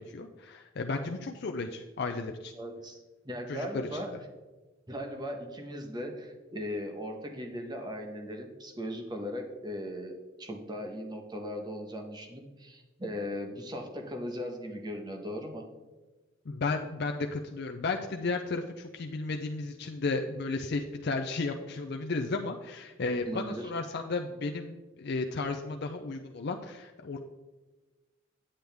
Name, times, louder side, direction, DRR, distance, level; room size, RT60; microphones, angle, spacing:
voice 1, 0.0-2.5 3.5-3.9 16.5-27.2, left 3 dB, 55° left, 4 dB, 0.5 m, -34 dB
voice 2, 2.5-4.1 4.9-15.6 23.2-23.7, equal, 20° right, 3 dB, 1.1 m, -38 dB
8.8 x 7.8 x 3.4 m, 1.2 s
head